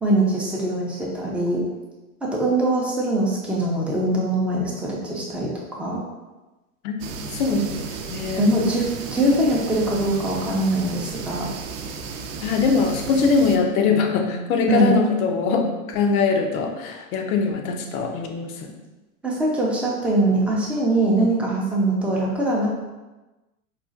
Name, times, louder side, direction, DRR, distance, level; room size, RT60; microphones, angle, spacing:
voice 1, 0.0-1.6 2.2-6.0 7.5-7.6 8.4-11.5 14.7-15.0 19.2-22.7, right 1 dB, 5° right, -4 dB, 0.4 m, -22 dB
sound 1, 7.0-13.6, right 5 dB, 65° right, 0.5 m, -34 dB
voice 2, 7.3-8.5 12.4-18.7, left 5 dB, 70° left, 3 dB, 0.7 m, -22 dB
4.0 x 2.4 x 2.4 m, 1.1 s
hypercardioid pair, 115°, 44 cm